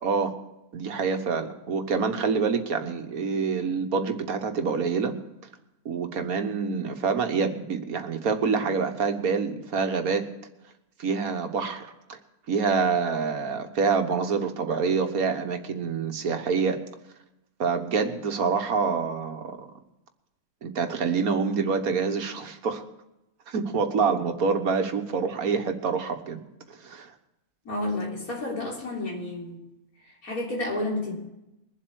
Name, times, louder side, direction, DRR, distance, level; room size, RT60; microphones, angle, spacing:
voice 1, 0.0-0.3 0.7-5.1 5.8-10.3 11.0-12.2 12.5-16.8 17.6-19.6 20.6-22.8 23.5-26.4 26.7-27.1, right 5 dB, 85° right, 6 dB, 1.8 m, -26 dB
voice 2, 27.7-29.6 30.0-31.2, left 2 dB, 85° left, -2 dB, 3.9 m, -31 dB
22.5 x 7.8 x 4.8 m, 0.91 s
omnidirectional pair, 1.5 m